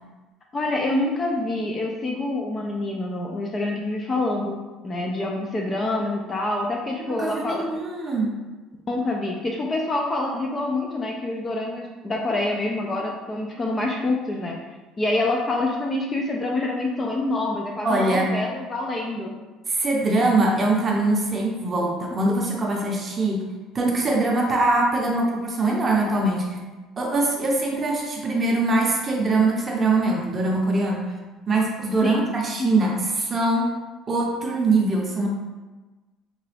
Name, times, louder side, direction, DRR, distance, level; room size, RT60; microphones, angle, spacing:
voice 1, 0.5-4.5 4.8-7.7 8.9-14.5 15.0-19.3 32.0-32.3 32.6-32.7, left 2 dB, 20° left, 0 dB, 0.3 m, -26 dB
voice 2, 7.0-8.3 17.8-18.3 19.7-23.5 23.7-26.6 27.0-31.1 31.5-33.7 34.1-35.3, right 2 dB, 25° right, -1 dB, 0.6 m, -22 dB
3.8 x 2.2 x 3.2 m, 1.2 s
cardioid pair, 160°, 0 cm